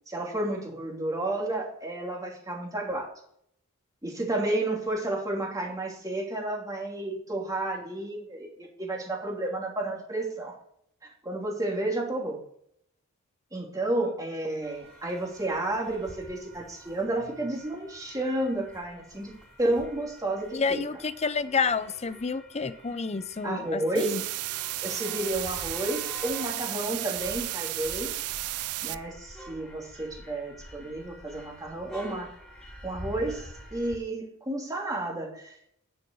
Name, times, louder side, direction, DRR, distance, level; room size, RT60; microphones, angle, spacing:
voice 1, 0.1-3.1 4.0-10.6 11.2-12.4 13.5-20.8 23.4-24.2 24.8-28.1 28.8-32.3 32.8-35.6, right 1 dB, 15° right, -1 dB, 2.9 m, -31 dB
sound 1, 14.6-34.0, equal, ahead, 3.6 m, -47 dB
voice 2, 20.5-24.2, left 5 dB, 30° left, 14 dB, 0.6 m, -29 dB
sound 2, 23.9-28.9, right 16 dB, 80° right, 0.5 m, -33 dB
9.8 x 7.0 x 7.1 m, 0.69 s
head